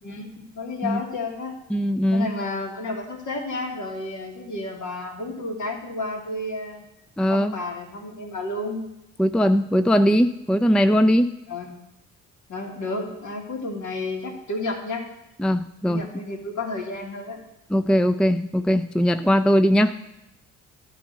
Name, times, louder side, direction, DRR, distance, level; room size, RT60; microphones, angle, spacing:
voice 1, 0.0-1.5 2.1-6.8 7.3-8.8 11.5-11.7 12.5-15.0 15.8-17.4, left 2 dB, 60° left, 0 dB, 2.7 m, -31 dB
voice 2, 1.7-2.3 7.2-7.5 9.2-11.4 15.4-16.0 17.7-20.0, equal, 5° left, 11 dB, 0.5 m, -20 dB
11.5 x 5.1 x 8.4 m, 0.85 s
hypercardioid pair, 55°, 33 cm